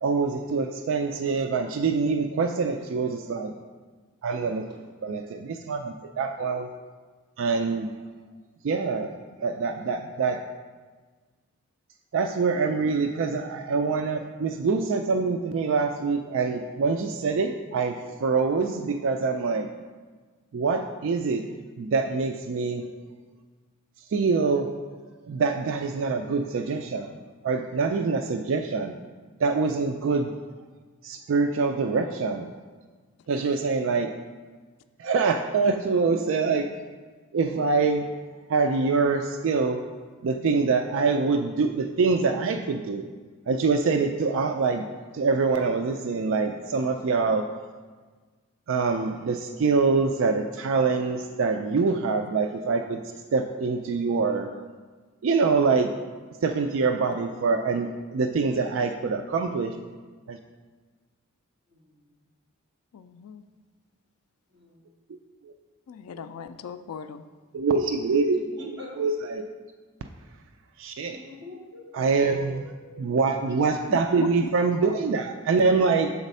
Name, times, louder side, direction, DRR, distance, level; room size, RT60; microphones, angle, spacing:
voice 1, 0.0-3.5 4.2-4.7 5.0-6.7 7.4-7.9 8.6-9.1 9.4-10.4 12.1-19.7 20.5-21.5 21.8-22.9 24.1-24.7 25.0-27.2 27.4-29.0 29.4-30.4 31.0-32.5 33.3-34.1 35.0-36.7 37.3-38.1 38.5-39.9 40.2-43.1 43.5-44.9 45.1-47.6 48.7-53.0 53.3-54.5 55.2-55.9 56.4-59.8 60.3-60.4 65.4-65.5 66.1-66.2 67.5-69.4 70.8-71.2 71.9-72.6 73.0-76.1, right 4 dB, 60° right, 6 dB, 0.3 m, -25 dB
voice 2, 2.6-3.2 4.7-4.8 61.7-62.1 64.5-64.9 68.3-69.0 71.1-73.2 73.5-73.8, left 2 dB, 25° right, -9 dB, 2.3 m, -45 dB
voice 3, 62.9-63.4 65.9-67.2 73.9-74.3, left 6 dB, 80° left, 10 dB, 0.4 m, -38 dB
7.1 x 4.1 x 5.4 m, 1.4 s
head